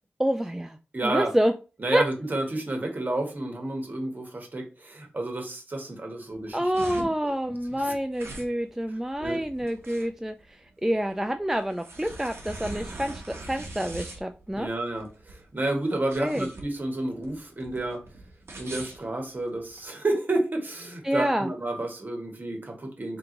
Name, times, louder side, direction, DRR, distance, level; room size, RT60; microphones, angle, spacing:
voice 1, 0.2-0.8 1.0-1.5 1.9-2.0 6.5-10.3 10.8-14.7 16.2-16.5 21.0-21.5, equal, 10° right, 6 dB, 0.4 m, -27 dB
voice 2, 0.9-1.3 1.8-7.4 7.7-7.9 8.9-9.4 14.6-18.0 18.6-23.2, right 2 dB, 45° right, 3 dB, 1.4 m, -31 dB
sound 1, 6.3-19.8, right 2 dB, 75° right, 1.1 m, -42 dB
3.6 x 2.9 x 3.8 m, 0.34 s
cardioid pair, 45°, 4 cm